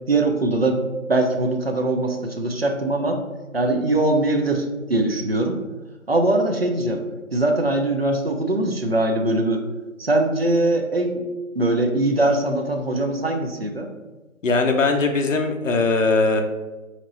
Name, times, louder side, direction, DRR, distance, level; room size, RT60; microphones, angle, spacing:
voice 1, 0.1-0.8 1.1-3.2 3.5-5.6 6.1-7.0 7.3-9.6 10.0-11.2 11.5-13.9, right 2 dB, 50° right, 4 dB, 0.4 m, -21 dB
voice 2, 14.4-16.4, left 3 dB, 65° left, 3 dB, 0.6 m, -20 dB
3.0 x 2.9 x 3.9 m, 1.2 s
figure-of-eight pair, 160°, 41 cm